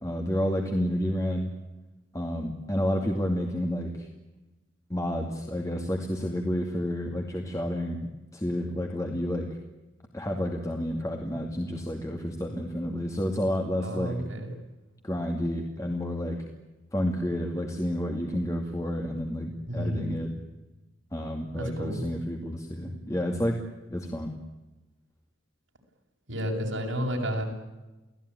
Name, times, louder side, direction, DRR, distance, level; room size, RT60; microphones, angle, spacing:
voice 1, 0.0-1.5 2.1-4.1 4.9-8.0 8.3-9.6 10.1-14.2 15.0-16.5 16.9-20.3 21.1-23.6 23.9-24.3, equal, 15° left, 2 dB, 2.5 m, -30 dB
voice 2, 13.8-14.5 19.7-20.2 21.6-22.0 26.3-27.4, equal, 75° right, 1 dB, 7.6 m, -31 dB
29.5 x 18.5 x 10.0 m, 1.1 s
head